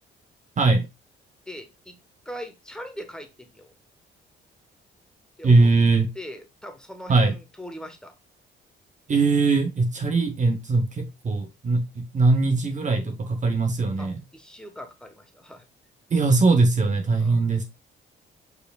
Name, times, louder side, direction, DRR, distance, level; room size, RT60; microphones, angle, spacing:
voice 1, 0.6-0.9 5.4-6.1 7.1-7.4 9.1-14.2 16.1-17.6, right 3 dB, 40° right, 0.9 m, -21 dB
voice 2, 1.5-2.0 2.2-3.7 5.4-5.7 6.1-8.1 14.0-15.7 17.2-17.4, equal, 5° left, 1.1 m, -40 dB
4.9 x 4.5 x 2.3 m
cardioid pair, 90°, 20 cm